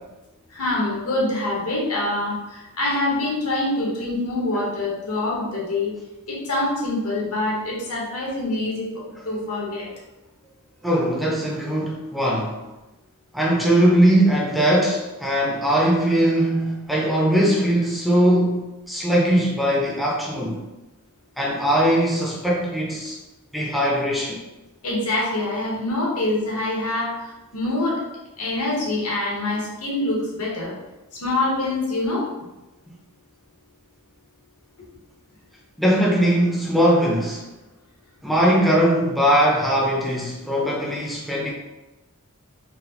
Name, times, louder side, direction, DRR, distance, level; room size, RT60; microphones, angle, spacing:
voice 1, 0.5-2.4 2.8-5.9 6.3-8.9 9.2-9.9 24.8-27.1 27.5-28.0 28.4-30.7 31.2-32.2, left 2 dB, 80° left, -3 dB, 1.0 m, -25 dB
voice 2, 10.8-12.5 13.3-20.6 21.4-23.2 23.5-24.4 35.8-37.4 38.2-41.5, right 1 dB, ahead, -4 dB, 0.4 m, -20 dB
3.9 x 2.0 x 2.8 m, 1.0 s
head